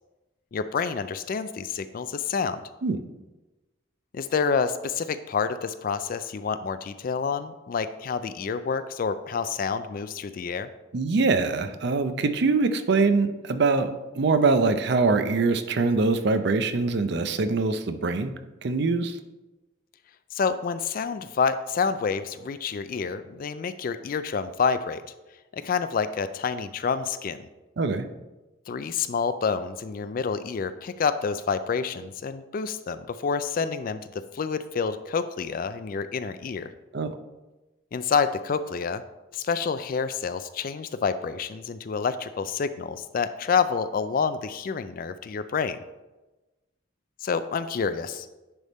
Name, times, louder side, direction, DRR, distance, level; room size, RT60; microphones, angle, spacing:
voice 1, 0.5-2.6 4.1-10.7 20.3-25.0 25.5-27.5 28.7-36.7 37.9-39.0 39.3-45.8 47.2-48.3, left 5 dB, 45° left, 12 dB, 0.3 m, -28 dB
voice 2, 10.9-18.3 18.6-19.2 27.8-28.0 36.9-37.1, right 3 dB, 60° right, 10 dB, 0.5 m, -23 dB
10.0 x 3.5 x 4.2 m, 1.1 s
head